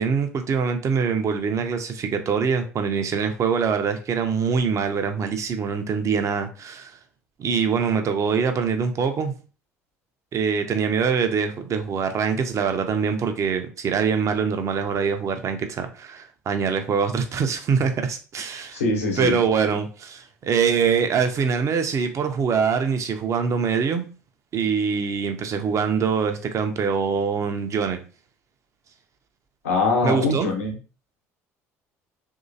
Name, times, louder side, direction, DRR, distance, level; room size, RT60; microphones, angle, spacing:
voice 1, 0.0-7.0 7.4-9.3 10.3-18.8 19.2-24.1 24.5-28.0 30.0-30.5, right 6 dB, 45° right, 6 dB, 0.7 m, -24 dB
voice 2, 18.7-19.3 29.6-30.7, left 3 dB, 85° left, 1 dB, 1.0 m, -23 dB
3.1 x 2.8 x 2.7 m, 0.36 s
hypercardioid pair, 65°, 7 cm